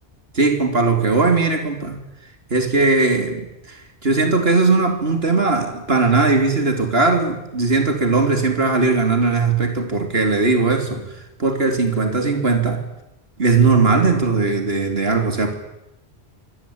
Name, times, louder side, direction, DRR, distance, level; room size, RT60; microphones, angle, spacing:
voice 1, 0.3-2.0 2.5-3.8 4.0-11.1 11.4-12.8 13.4-15.5, right 3 dB, 65° right, 5 dB, 3.6 m, -18 dB
23.5 x 17.5 x 8.8 m, 0.92 s
omnidirectional pair, 1.1 m